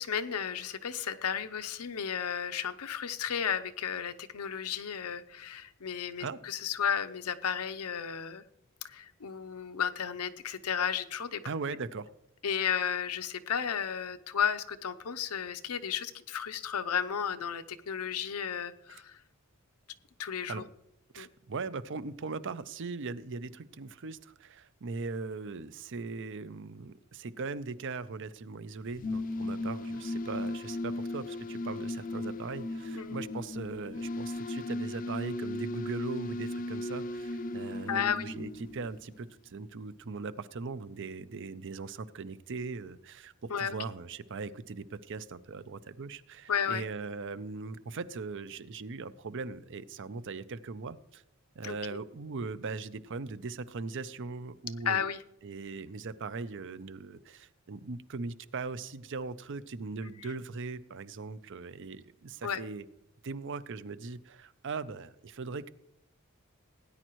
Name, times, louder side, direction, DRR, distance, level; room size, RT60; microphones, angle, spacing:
voice 1, 0.0-8.4 8.8-11.4 12.4-19.2 20.2-20.7 21.2-21.3 32.9-33.2 37.9-38.3 43.5-43.7 46.5-46.8 51.6-52.0 54.9-55.2 60.2-60.3 62.4-62.6, left 7 dB, 90° left, 11 dB, 0.7 m, -33 dB
voice 2, 11.4-12.1 18.9-19.0 20.5-20.7 21.1-51.2 51.6-55.0 55.4-62.8 63.2-65.7, right 4 dB, 60° right, 15 dB, 0.6 m, -39 dB
sound 1, 28.8-39.3, left 2 dB, 40° left, 0.5 m, -36 dB
18.0 x 10.0 x 3.1 m, 0.82 s
head